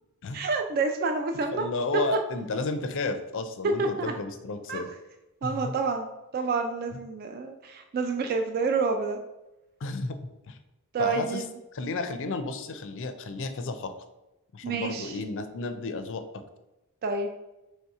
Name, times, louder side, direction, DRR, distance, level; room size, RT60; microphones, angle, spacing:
voice 1, 0.3-1.6 3.6-4.1 4.7-4.8 5.4-9.2 10.9-11.4 14.6-15.2 17.0-17.3, right 4 dB, 45° right, 5 dB, 0.3 m, -28 dB
voice 2, 1.5-4.9 5.4-5.7 6.9-7.0 9.8-10.6 11.0-11.4 11.7-13.9 14.5-16.4, left 2 dB, 60° left, 8 dB, 0.4 m, -32 dB
3.2 x 2.8 x 4.6 m, 0.98 s
head